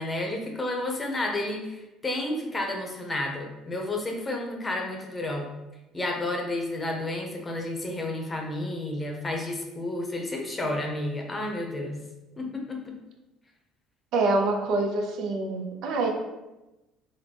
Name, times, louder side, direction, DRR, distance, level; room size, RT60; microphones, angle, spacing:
voice 1, 0.0-5.5 5.9-12.0 12.4-12.9, left 1 dB, 25° left, 2 dB, 0.7 m, -31 dB
voice 2, 14.1-16.1, right 2 dB, 65° right, 3 dB, 0.6 m, -26 dB
3.7 x 2.1 x 3.4 m, 1.0 s
supercardioid pair, 95°, 0 cm